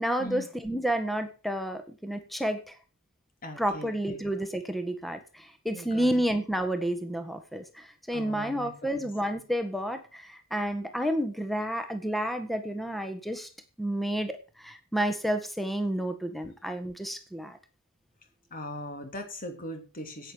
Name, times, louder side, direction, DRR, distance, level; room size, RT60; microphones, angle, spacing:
voice 1, 0.0-2.7 3.6-13.5 13.8-17.6, right 1 dB, ahead, 7 dB, 1.5 m, -30 dB
voice 2, 3.4-4.2 5.7-6.2 8.1-9.1 18.5-20.3, equal, 40° left, 5 dB, 3.1 m, -40 dB
10.5 x 8.9 x 6.2 m, 0.34 s
head